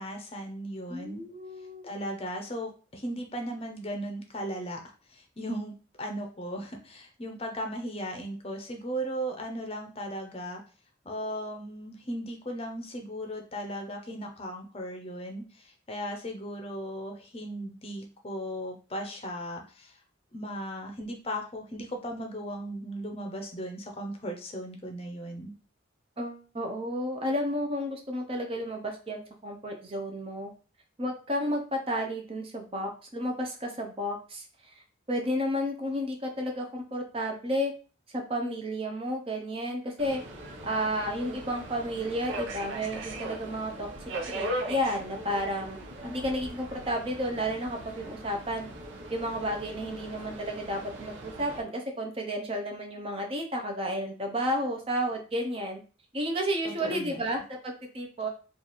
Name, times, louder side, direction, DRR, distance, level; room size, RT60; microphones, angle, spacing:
voice 1, 0.0-1.2 1.8-4.8 5.1-10.6 11.0-20.0 20.3-25.5 56.6-57.2, equal, 30° left, 3 dB, 0.6 m, -37 dB
voice 2, 0.9-1.9 26.2-30.5 31.0-34.4 34.7-34.8 35.1-37.7 38.1-40.2 40.6-43.9 44.3-48.7 49.1-55.8 56.1-58.3, equal, 30° right, 3 dB, 0.6 m, -32 dB
Subway metro underground, 40.0-51.6, right 1 dB, 80° right, 0.8 m, -39 dB
3.1 x 2.4 x 4.0 m, 0.36 s
head